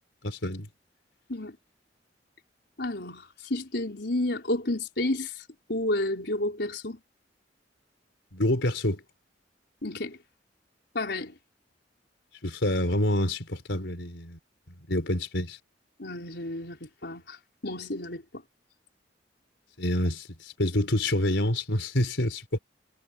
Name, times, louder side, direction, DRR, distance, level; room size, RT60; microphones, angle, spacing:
voice 1, 0.2-0.7 8.3-9.0 12.4-14.4 14.9-15.6 19.8-22.6, left 1 dB, 85° left, 4.2 m, -27 dB
voice 2, 2.8-5.4 5.7-7.0 9.8-10.2 10.9-11.4 16.0-17.4 17.6-18.4, left 1 dB, 65° left, 4.9 m, -31 dB
head